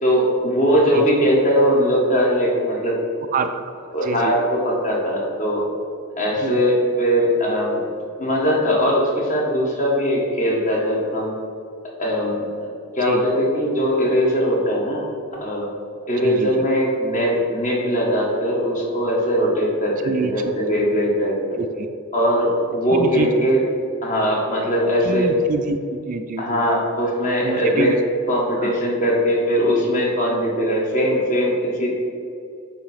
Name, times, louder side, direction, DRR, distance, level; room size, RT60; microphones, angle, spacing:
voice 1, 0.0-3.0 3.9-5.7 6.2-7.8 8.2-11.3 12.0-15.0 15.4-15.7 16.1-21.6 22.1-23.6 24.0-25.3 26.4-27.9 28.3-32.0, equal, 35° left, -3 dB, 1.6 m, -20 dB
voice 2, 3.3-4.3 6.4-6.6 13.0-13.2 16.2-16.6 20.0-20.3 21.6-21.9 23.0-23.3 25.0-26.6 27.4-28.0 28.6-28.7, right 4 dB, 40° right, 8 dB, 0.3 m, -26 dB
8.5 x 2.9 x 5.7 m, 2.4 s
head